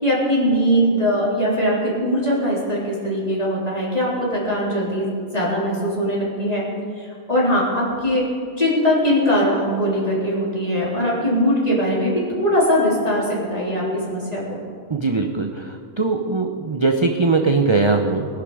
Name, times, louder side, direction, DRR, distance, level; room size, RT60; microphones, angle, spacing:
voice 1, 0.0-6.6 7.0-8.3 8.6-14.6, equal, 25° left, -6 dB, 4.1 m, -21 dB
voice 2, 14.9-18.3, right 3 dB, 30° right, 4 dB, 0.6 m, -20 dB
20.5 x 11.0 x 5.0 m, 2.3 s
omnidirectional pair, 1.5 m